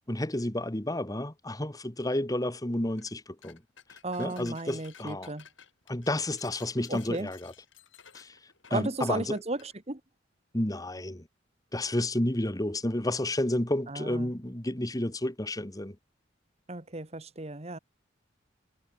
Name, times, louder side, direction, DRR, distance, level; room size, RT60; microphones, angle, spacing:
voice 1, 0.1-3.6 3.9-5.3 5.9-7.5 8.1-8.4 8.7-9.4 10.5-11.3 11.7-16.0, left 1 dB, 20° left, 1.7 m, -31 dB
sound 1, 2.9-3.1 3.4-9.7, left 8 dB, 85° left, 7.5 m, -54 dB
voice 2, 4.0-5.4 6.9-7.3 8.7-10.0 13.9-14.3 16.7-17.8, right 2 dB, 35° right, 1.6 m, -34 dB
head